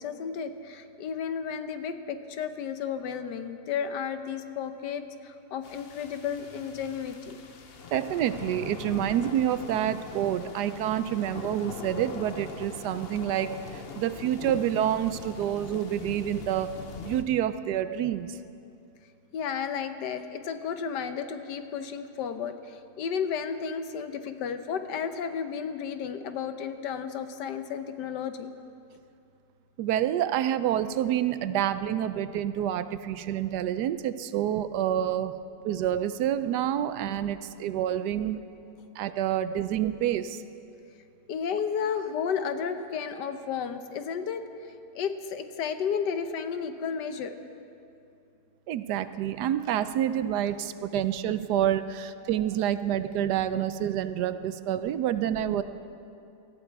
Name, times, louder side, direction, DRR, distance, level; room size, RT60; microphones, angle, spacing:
voice 1, 0.0-7.5 19.3-28.5 41.3-47.4, left 7 dB, 80° left, 9 dB, 1.4 m, -33 dB
sound 1, 5.6-17.2, left 5 dB, 50° left, 0.8 m, -42 dB
voice 2, 7.9-16.7 17.0-18.4 29.8-38.4 39.0-40.4 48.7-55.6, right 10 dB, 75° right, 13 dB, 1.1 m, -28 dB
19.0 x 14.0 x 4.6 m, 2.6 s
omnidirectional pair, 1.8 m